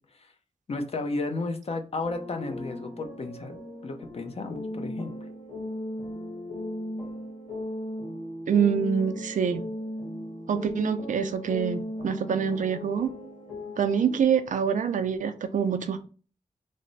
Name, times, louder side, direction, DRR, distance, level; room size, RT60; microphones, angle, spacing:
voice 1, 0.7-3.6 3.8-5.1, left 3 dB, 50° left, 5 dB, 0.6 m, -33 dB
sound 1, 2.0-14.2, left 1 dB, 75° left, 1.6 m, -37 dB
voice 2, 8.5-9.7 10.5-13.1 13.8-16.0, right 7 dB, 80° right, 9 dB, 0.4 m, -25 dB
3.2 x 2.0 x 3.9 m, 0.38 s
wide cardioid pair, 125°, 13 cm